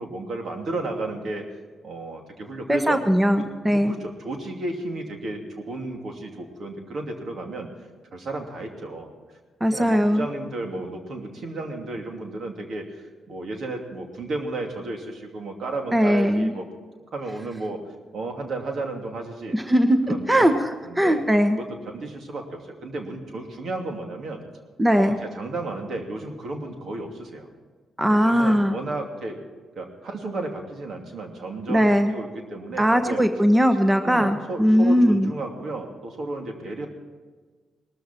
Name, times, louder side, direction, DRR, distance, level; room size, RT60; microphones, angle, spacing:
voice 1, 0.0-1.5 1.8-3.0 3.7-7.7 8.1-9.1 9.7-16.7 17.1-17.8 18.1-19.6 20.1-20.5 20.8-21.2 21.6-24.4 24.9-27.5 28.1-29.4 29.8-33.2 34.0-36.9, right 2 dB, 65° right, 3 dB, 2.6 m, -33 dB
voice 2, 2.7-3.9 9.6-10.3 15.9-16.5 19.5-20.5 21.0-21.6 24.8-25.2 28.0-28.7 31.7-32.1 32.8-35.3, equal, 15° right, 7 dB, 1.1 m, -19 dB
19.5 x 13.5 x 4.5 m, 1.4 s
supercardioid pair, 55°, 0 cm